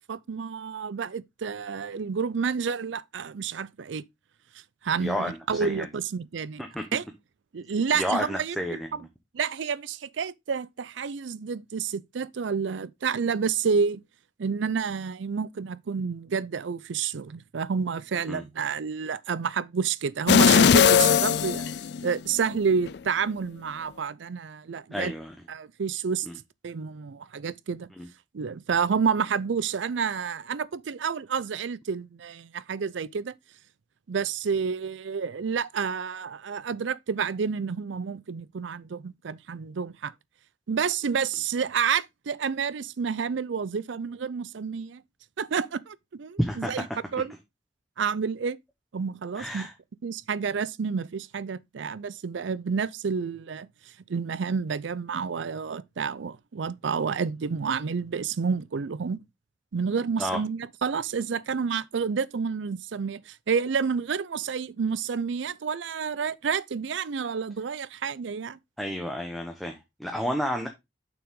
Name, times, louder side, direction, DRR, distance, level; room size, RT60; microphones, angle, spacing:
voice 1, 0.1-4.0 4.8-6.6 6.9-7.0 7.5-8.8 9.3-14.0 14.4-21.7 22.0-25.1 25.5-26.3 26.6-27.9 28.3-33.3 34.1-40.1 40.7-45.0 45.4-46.8 47.1-47.3 48.0-48.6 48.9-49.7 50.0-53.7 54.1-59.2 59.7-68.6, right 6 dB, 80° right, 0.5 m, -29 dB
voice 2, 5.0-5.9 6.6-6.9 7.9-9.1 18.3-18.4 24.9-25.3 26.3-26.4 28.0-28.1 46.4-46.8 49.3-49.7 60.2-60.4 68.8-70.7, equal, ahead, 1.0 m, -31 dB
sound 1, 20.3-22.4 22.9-23.0, left 7 dB, 60° left, 0.4 m, -19 dB
7.0 x 6.0 x 3.6 m
head